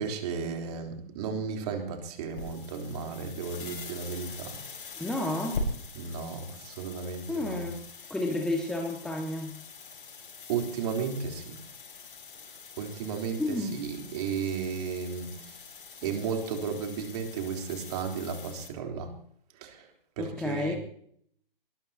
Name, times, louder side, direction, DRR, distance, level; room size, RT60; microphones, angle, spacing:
voice 1, 0.0-4.6 6.0-7.7 10.5-11.5 12.8-15.4 16.0-19.1 19.6-19.8 20.2-20.8, right 6 dB, 40° right, 3 dB, 3.7 m, -34 dB
sound 1, 2.3-18.7, left 3 dB, 65° left, 7.0 m, -43 dB
voice 2, 5.0-5.6 7.3-7.8 8.1-9.5 13.4-13.8 20.2-20.7, left 2 dB, ahead, 0 dB, 1.8 m, -31 dB
22.0 x 20.5 x 2.9 m, 0.65 s
figure-of-eight pair, 130°, 29 cm